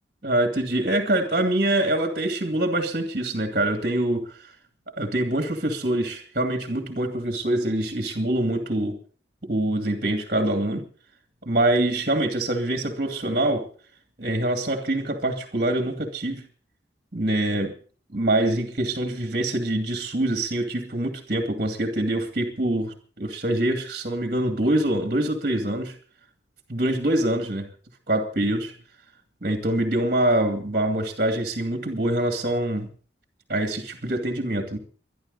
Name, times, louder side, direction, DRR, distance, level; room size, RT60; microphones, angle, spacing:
voice 1, 0.2-4.3 5.0-9.0 9.4-10.8 11.4-13.6 14.2-16.4 17.1-17.7 18.1-26.0 26.7-27.7 28.1-28.7 29.4-32.9 33.5-34.8, right 1 dB, 45° right, 6 dB, 2.3 m, -24 dB
22.0 x 11.5 x 4.0 m, 0.41 s
head